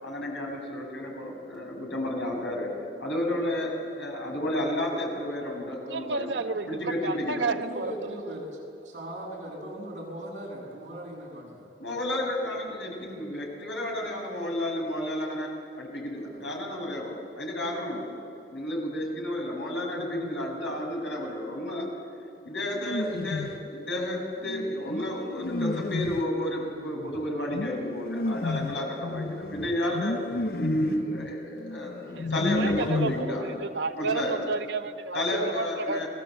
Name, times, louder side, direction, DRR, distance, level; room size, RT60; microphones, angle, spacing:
voice 1, 0.0-2.7 3.0-6.4 6.7-7.5 11.8-15.5 15.7-18.1 18.5-21.9 22.4-30.1 30.5-33.4 33.9-34.4 35.1-36.1, left 1 dB, 85° left, 0 dB, 6.8 m, -31 dB
voice 2, 5.9-7.9 32.1-36.0, right 4 dB, 85° right, 4 dB, 1.3 m, -31 dB
voice 3, 7.6-11.7 16.1-16.2, right 1 dB, 45° right, -3 dB, 7.6 m, -39 dB
sound 1, 22.7-23.7 24.4-33.6, left 2 dB, 55° left, 0.6 m, -32 dB
30.0 x 20.0 x 7.8 m, 2.7 s
head